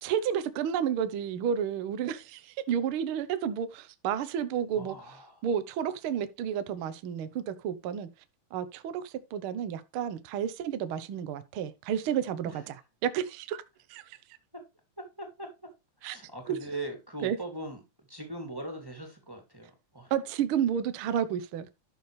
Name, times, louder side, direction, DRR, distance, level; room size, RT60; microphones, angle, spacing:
voice 1, 0.0-5.0 5.4-8.1 8.5-12.8 13.0-13.6 13.9-14.2 16.0-16.2 16.5-16.6 17.2-17.4 20.1-21.7, right 8 dB, 65° right, 1.4 m, -31 dB
voice 2, 4.7-5.3 12.5-12.6 15.2-15.5 16.0-17.8 18.1-20.1, right 1 dB, 10° right, 1.9 m, -40 dB
12.0 x 6.5 x 3.2 m
omnidirectional pair, 3.5 m